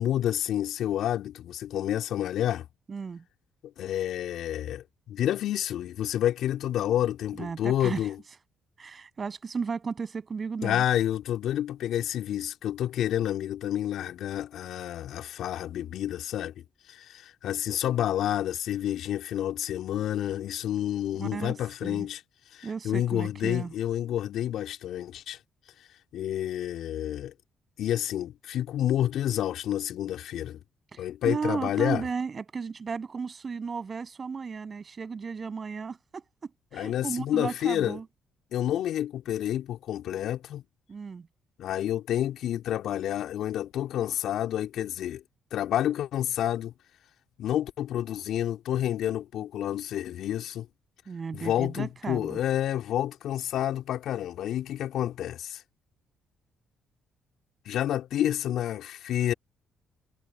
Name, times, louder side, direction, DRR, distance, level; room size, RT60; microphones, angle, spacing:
voice 1, 0.0-2.7 3.8-8.2 10.6-16.5 16.9-22.2 22.5-25.4 26.1-27.3 27.8-30.6 31.0-32.0 36.7-38.0 38.5-40.6 41.6-45.2 45.5-46.7 47.4-50.7 51.3-55.6 57.7-59.3, left 11 dB, 70° left, 3.7 m, -29 dB
voice 2, 2.9-3.2 7.4-8.1 8.8-10.8 21.1-21.5 21.8-22.1 22.6-23.7 30.9-36.2 36.7-38.1 40.9-41.3 51.1-52.4, right 5 dB, 45° right, 6.9 m, -34 dB
hypercardioid pair, 50°, 0 cm